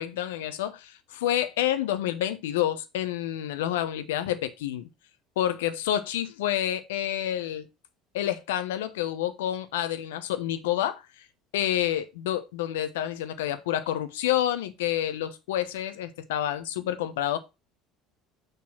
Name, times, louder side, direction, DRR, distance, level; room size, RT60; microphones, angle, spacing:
voice 1, 0.0-4.9 5.4-7.7 8.1-11.0 11.5-17.4, left 12 dB, 80° left, 0.9 m, -28 dB
6.4 x 4.1 x 5.7 m
hypercardioid pair, 70°, 0 cm